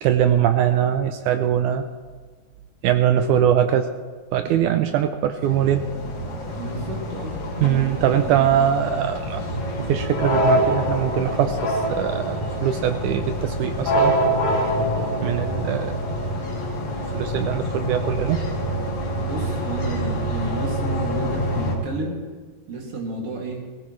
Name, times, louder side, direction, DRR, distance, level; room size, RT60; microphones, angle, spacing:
voice 1, 0.0-1.9 2.8-3.9 4.3-5.8 7.6-9.4 9.8-14.1 15.2-16.2 17.1-18.4, right 10 dB, 75° right, 8 dB, 1.9 m, -22 dB
sound 1, 5.4-21.8, equal, 55° left, 3.1 m, -26 dB
voice 2, 6.6-7.9 8.2-8.5 8.9-9.0 19.2-22.2 22.7-23.6, right 2 dB, 45° right, -1 dB, 3.1 m, -32 dB
19.5 x 17.0 x 3.2 m, 1.5 s
omnidirectional pair, 3.9 m